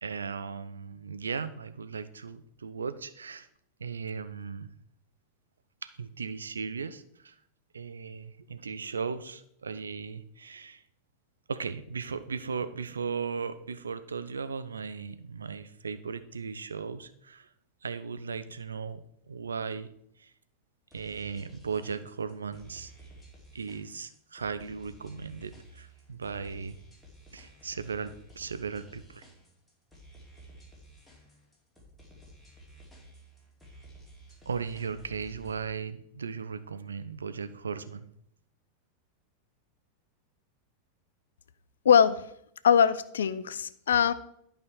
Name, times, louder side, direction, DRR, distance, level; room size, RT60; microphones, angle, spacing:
voice 1, 0.0-3.5 3.8-4.7 5.8-7.3 7.7-10.8 11.5-17.5 17.8-19.9 20.2-20.3 20.9-22.9 23.5-26.8 27.3-29.3 34.5-38.0, right 5 dB, 70° right, 12 dB, 0.5 m, -37 dB
sound 1, 20.9-35.7, equal, ahead, 2.6 m, -53 dB
voice 2, 41.8-42.3 42.6-44.1, left 8 dB, 65° left, 15 dB, 0.4 m, -22 dB
11.0 x 5.1 x 4.4 m, 0.73 s
figure-of-eight pair, 90°, 0 cm